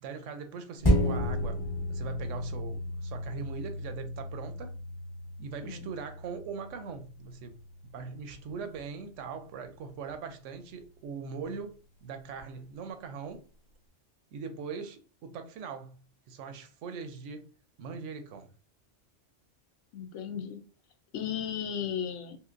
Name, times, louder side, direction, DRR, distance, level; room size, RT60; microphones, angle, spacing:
voice 1, 0.0-1.6 1.9-4.8 5.4-7.5 7.9-13.4 14.3-16.0 16.3-17.5 17.8-18.5, right 5 dB, 85° right, 0.9 m, -41 dB
sound 1, 0.8-9.7 10.1-10.2, equal, 25° left, 0.8 m, -33 dB
voice 2, 19.9-20.6 21.1-22.4, left 8 dB, 80° left, 0.9 m, -35 dB
3.1 x 2.8 x 2.4 m
omnidirectional pair, 1.2 m